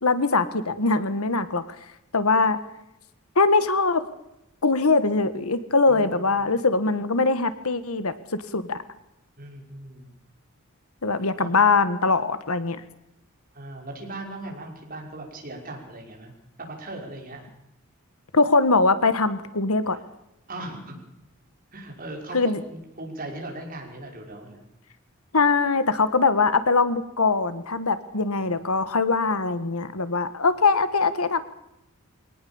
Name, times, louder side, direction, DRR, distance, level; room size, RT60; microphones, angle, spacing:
voice 1, 0.0-1.6 2.1-2.6 3.3-4.0 4.6-8.1 8.5-8.8 11.0-12.8 18.3-20.0 22.3-22.6 25.3-31.4, left 3 dB, 80° left, 13 dB, 1.6 m, -22 dB
voice 2, 5.9-6.5 9.4-10.1 11.4-11.6 13.5-16.3 16.6-17.4 19.9-20.0 20.5-21.0 21.7-24.6, right 2 dB, 40° right, 1 dB, 5.8 m, -38 dB
24.0 x 18.5 x 7.2 m, 0.85 s
head